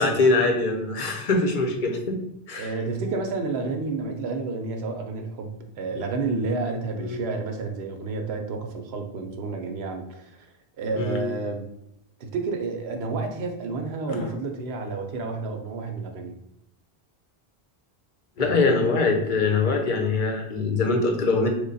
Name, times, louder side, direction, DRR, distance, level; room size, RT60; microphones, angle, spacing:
voice 1, 0.0-2.2 2.5-2.8 7.0-7.2 10.9-11.2 14.1-14.3 18.4-21.5, left 3 dB, 55° left, 3 dB, 0.7 m, -23 dB
voice 2, 2.5-10.5 10.8-11.6 12.2-16.3 18.4-18.7, right 3 dB, 85° right, 4 dB, 0.9 m, -30 dB
3.2 x 2.2 x 3.9 m, 0.80 s
omnidirectional pair, 1.0 m